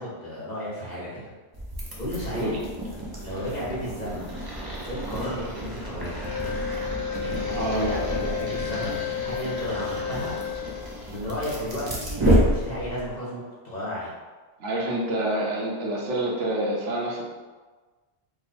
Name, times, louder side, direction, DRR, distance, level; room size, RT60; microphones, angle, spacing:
voice 1, 0.0-1.3 2.0-2.6 3.2-4.4 4.9-6.2 7.2-10.3 11.1-14.1, equal, 40° left, -8 dB, 1.1 m, -33 dB
sound 1, 1.5-13.1, equal, 30° right, 0.4 m, -30 dB
Wind instrument woodwind instrument, 6.2-10.9, left 8 dB, 85° left, 1.1 m, -32 dB
voice 2, 7.5-8.0 14.6-17.2, right 1 dB, 85° right, -3 dB, 1.1 m, -27 dB
3.1 x 2.1 x 4.1 m, 1.4 s
omnidirectional pair, 1.2 m